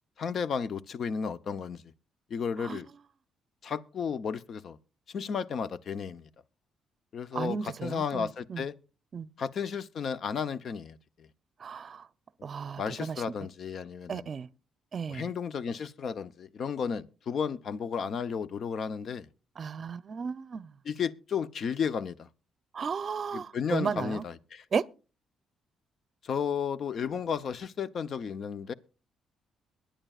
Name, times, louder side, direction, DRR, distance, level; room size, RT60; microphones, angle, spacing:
voice 1, 0.2-1.8 2.3-2.9 3.6-4.8 5.1-6.3 7.1-8.7 9.4-11.3 12.8-14.3 15.1-19.3 20.8-22.3 23.3-24.6 26.2-28.7, left 6 dB, 55° left, 0.7 m, -33 dB
voice 2, 7.3-8.6 9.1-9.3 11.6-12.1 12.4-13.2 14.1-14.5 14.9-15.3 19.6-20.7 22.7-24.2 24.7-24.9, right 6 dB, 45° right, 0.6 m, -34 dB
22.5 x 10.0 x 2.4 m
cardioid pair, 90°, 0 cm